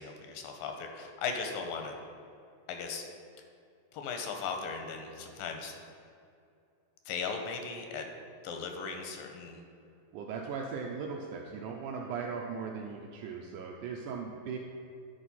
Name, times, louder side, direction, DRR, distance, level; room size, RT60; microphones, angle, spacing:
voice 1, 0.0-1.9 2.7-3.0 3.9-5.7 7.1-8.0 8.4-9.6, left 5 dB, 85° left, 4 dB, 2.3 m, -37 dB
voice 2, 10.1-14.6, right 5 dB, 80° right, 0 dB, 1.8 m, -38 dB
10.0 x 4.7 x 4.1 m, 2.4 s
omnidirectional pair, 4.1 m